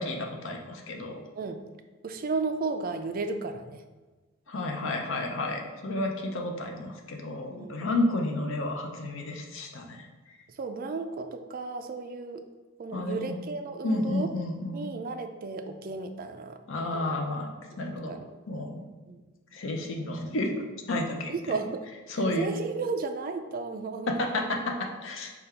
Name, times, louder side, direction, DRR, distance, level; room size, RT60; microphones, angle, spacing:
voice 1, 0.0-1.2 4.5-10.4 12.9-13.4 13.8-14.9 16.7-17.5 17.8-18.2 18.5-18.9 19.5-21.3 22.1-22.5 24.1-25.3, left 2 dB, 60° left, 2 dB, 0.7 m, -31 dB
voice 2, 2.0-3.8 7.5-7.9 10.5-12.4 12.8-14.3 14.7-16.6 16.9-17.2 18.1-18.3 19.1-19.2 21.3-21.8 22.4-24.2, right 4 dB, 45° right, 7 dB, 0.4 m, -34 dB
5.1 x 2.4 x 4.3 m, 1.3 s
head